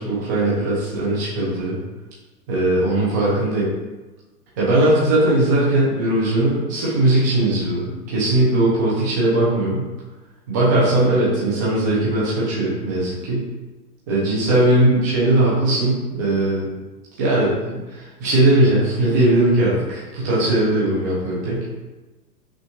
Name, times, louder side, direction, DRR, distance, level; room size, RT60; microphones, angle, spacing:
voice 1, 0.0-1.8 2.5-3.7 4.6-9.8 10.5-13.4 14.1-16.7 17.2-21.6, right 1 dB, 10° right, -7 dB, 0.5 m, -19 dB
5.7 x 2.5 x 3.0 m, 1.1 s
hypercardioid pair, 155°, 50 cm